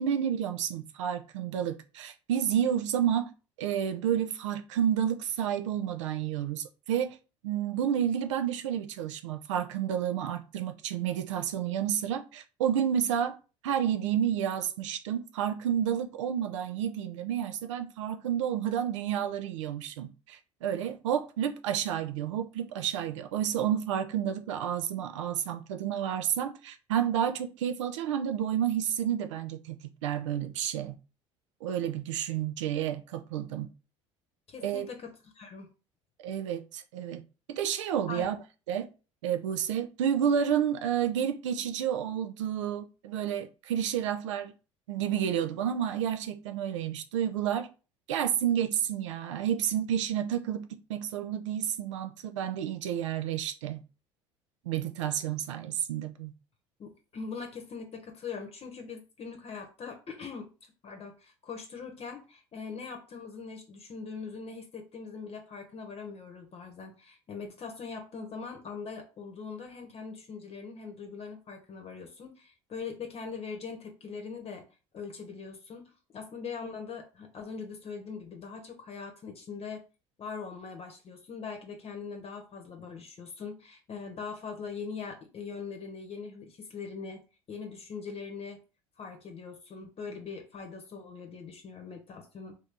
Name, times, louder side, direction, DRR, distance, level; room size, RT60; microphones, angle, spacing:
voice 1, 0.0-3.3 3.6-7.2 7.4-13.4 13.6-31.0 31.6-33.7 34.6-34.9 36.2-37.2 37.5-38.4 38.7-38.9 39.2-44.5 44.9-47.7 48.1-53.8 54.7-56.3, right 9 dB, 85° right, 0.5 m, -30 dB
voice 2, 34.5-35.7 38.1-38.3 56.8-74.7 74.9-79.8 80.2-87.2 87.5-88.6 89.0-92.5, left 5 dB, 40° left, 0.9 m, -41 dB
2.7 x 2.7 x 3.5 m
hypercardioid pair, 70°, 15 cm